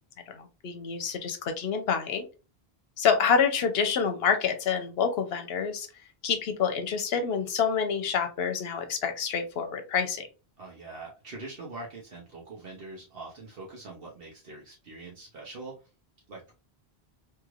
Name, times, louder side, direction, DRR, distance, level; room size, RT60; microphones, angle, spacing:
voice 1, 0.3-2.3 3.0-5.9 6.2-10.3, left 6 dB, 70° left, 6 dB, 0.9 m, -27 dB
voice 2, 10.6-15.7 16.3-16.5, right 3 dB, 65° right, -3 dB, 1.0 m, -43 dB
3.1 x 2.8 x 2.4 m, 0.31 s
omnidirectional pair, 1.1 m